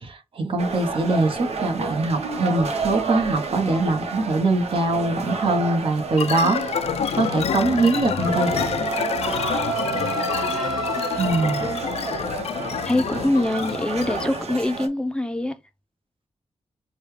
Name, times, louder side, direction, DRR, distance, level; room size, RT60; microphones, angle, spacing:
voice 1, 0.0-6.8 7.1-8.5 11.2-11.6, right 2 dB, 55° right, 1.2 m, -22 dB
sound 1, 0.6-14.9, right 4 dB, 75° right, 1.1 m, -31 dB
sound 2, 6.2-14.5, left 8 dB, 70° left, 0.4 m, -28 dB
Wind instrument woodwind instrument, 8.2-12.2, right 5 dB, 40° right, 0.8 m, -30 dB
voice 2, 11.4-11.8 12.7-15.6, left 1 dB, 10° left, 0.6 m, -24 dB
6.5 x 2.3 x 3.2 m
wide cardioid pair, 140°, 11 cm